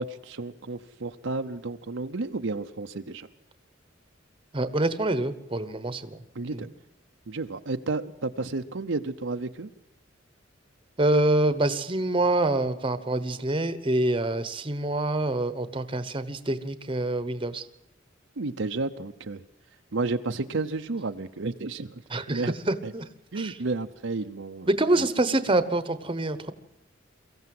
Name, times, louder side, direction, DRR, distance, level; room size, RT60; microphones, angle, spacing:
voice 1, 0.0-3.3 6.3-6.7 7.3-9.7 18.4-19.4 19.9-22.0 22.3-22.5 22.8-22.9 23.3-24.7 25.0-25.1, right 3 dB, 70° right, 7 dB, 0.8 m, -31 dB
voice 2, 4.5-6.2 6.5-6.6 11.0-17.6 22.1-23.0 23.3-23.6 24.7-26.5, right 2 dB, 25° right, 12 dB, 1.1 m, -26 dB
23.5 x 15.0 x 7.8 m, 0.82 s
head